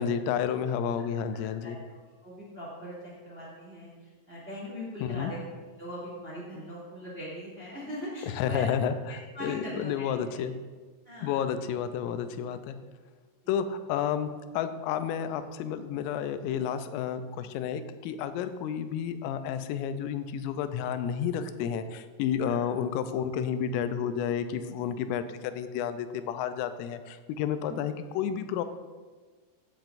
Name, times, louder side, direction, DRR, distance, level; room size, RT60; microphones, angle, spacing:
voice 1, 0.0-1.8 5.0-5.3 8.3-10.6 11.2-12.8 13.5-28.7, left 8 dB, 90° left, 10 dB, 3.2 m, -31 dB
voice 2, 1.3-1.8 2.2-3.9 4.3-5.4 5.8-8.8 9.3-10.4 11.0-11.7 22.4-22.6 27.6-27.8, equal, 20° right, -6 dB, 1.6 m, -41 dB
15.5 x 8.8 x 2.6 m, 1.4 s
omnidirectional pair, 5.7 m